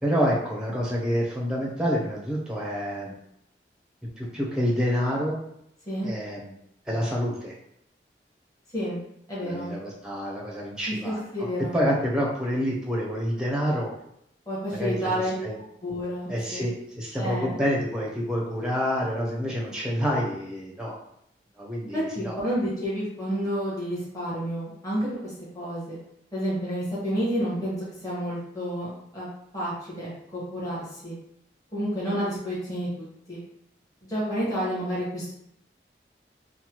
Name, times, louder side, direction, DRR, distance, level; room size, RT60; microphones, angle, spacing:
voice 1, 0.0-3.1 4.2-5.4 6.0-6.5 6.9-7.5 9.4-13.9 14.7-15.6 16.3-21.0 21.6-22.4, equal, 5° right, -4 dB, 0.6 m, -28 dB
voice 2, 9.3-9.7 10.9-11.8 14.5-15.3 15.8-16.6 17.2-17.6 21.9-26.0 26.3-27.7 28.0-29.3 29.5-31.1 31.7-33.4 34.0-35.3, equal, 20° left, -9 dB, 1.2 m, -30 dB
3.2 x 2.1 x 2.9 m, 0.75 s
head